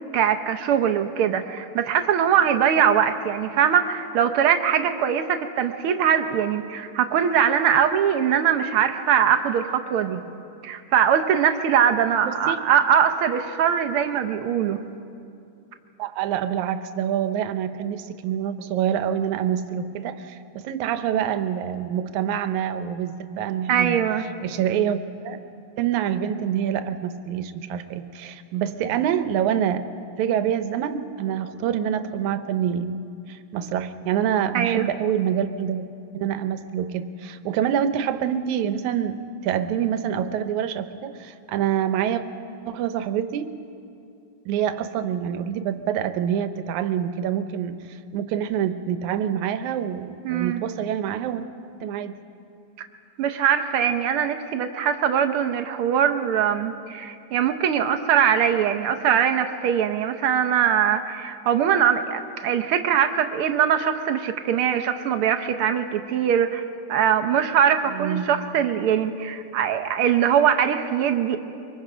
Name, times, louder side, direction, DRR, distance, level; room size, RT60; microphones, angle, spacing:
voice 1, 0.1-10.2 10.6-14.8 23.7-24.2 34.5-34.9 50.2-50.6 53.2-66.6 66.9-71.4, right 8 dB, 70° right, 8 dB, 1.4 m, -22 dB
voice 2, 12.3-12.6 16.0-24.0 24.4-25.4 25.8-29.9 30.2-35.9 36.1-42.2 42.7-43.5 44.5-51.5 51.8-52.1 67.9-68.4, right 9 dB, 85° right, 10 dB, 2.2 m, -26 dB
24.0 x 24.0 x 5.0 m, 2.5 s
omnidirectional pair, 3.3 m